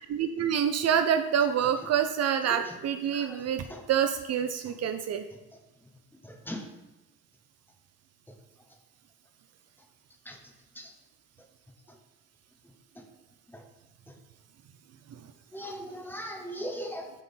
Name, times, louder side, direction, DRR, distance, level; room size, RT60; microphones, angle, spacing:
voice 1, 0.1-5.3 15.1-15.2, right 8 dB, 55° right, 9 dB, 0.5 m, -27 dB
voice 2, 3.0-3.8 4.6-4.7 6.2-6.7 10.2-10.4 10.7-10.9 12.9-13.0 13.5-13.6 14.1-14.2 15.5-17.1, equal, 5° left, 3 dB, 1.0 m, -40 dB
5.6 x 3.8 x 5.7 m, 1.0 s
cardioid pair, 90°, 30 cm